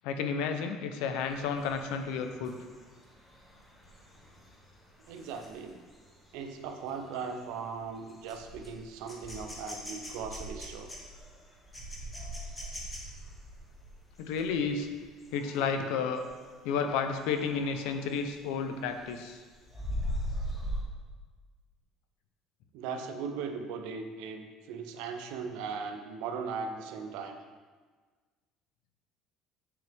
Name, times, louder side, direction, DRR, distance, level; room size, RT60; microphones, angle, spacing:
voice 1, 0.0-2.5 14.2-14.9 15.3-16.2 16.6-19.4, left 6 dB, 75° left, 7 dB, 0.7 m, -31 dB
sound 1, 1.2-15.7 16.2-16.5 16.8-18.5 18.8-20.8, equal, 10° left, 0.9 m, -42 dB
voice 2, 5.1-5.8 6.3-10.9 22.7-27.4, right 5 dB, 70° right, 5 dB, 0.8 m, -38 dB
7.9 x 6.3 x 3.5 m, 1.4 s
cardioid pair, 175°, 0 cm